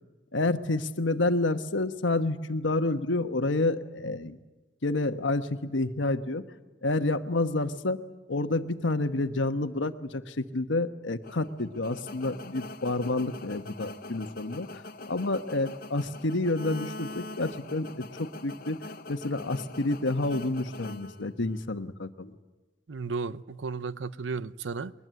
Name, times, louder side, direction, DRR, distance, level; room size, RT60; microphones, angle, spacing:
voice 1, 0.3-4.4 4.8-6.4 6.8-8.0 8.3-14.8 15.1-18.8 19.1-22.3, left 2 dB, 90° left, 1.2 m, -29 dB
sound 1, 11.2-21.7, left 2 dB, 55° left, 1.1 m, -43 dB
voice 2, 22.9-24.9, right 4 dB, 80° right, 0.7 m, -34 dB
22.0 x 20.0 x 9.3 m
head